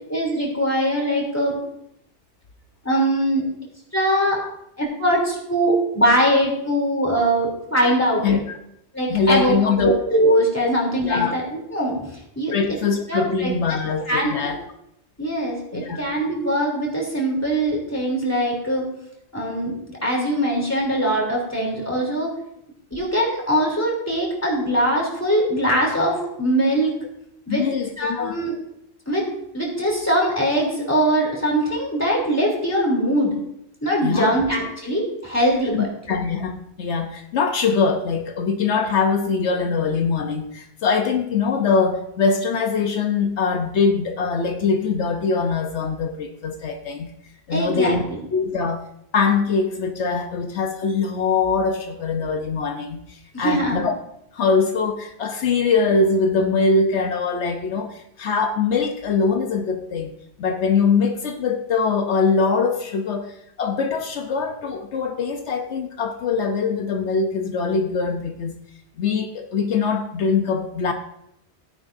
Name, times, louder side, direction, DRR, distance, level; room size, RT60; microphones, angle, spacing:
voice 1, 0.1-1.6 2.8-3.4 3.9-4.4 4.8-8.4 8.9-12.8 13.1-13.8 14.1-14.3 15.2-18.8 19.3-22.3 22.9-26.9 27.5-27.6 28.0-28.6 29.1-33.3 33.8-35.9 47.5-48.2 53.3-53.8, equal, 15° left, -2 dB, 3.2 m, -22 dB
voice 2, 8.2-8.6 9.1-10.0 11.0-11.3 12.5-14.6 15.7-16.0 27.5-28.4 34.0-34.3 35.7-47.1 47.5-48.0 48.3-48.9 49.1-53.9 54.3-60.1 60.4-68.5 69.0-70.9, left 4 dB, 80° left, 5 dB, 1.1 m, -22 dB
15.5 x 9.8 x 2.6 m, 0.77 s
omnidirectional pair, 1.2 m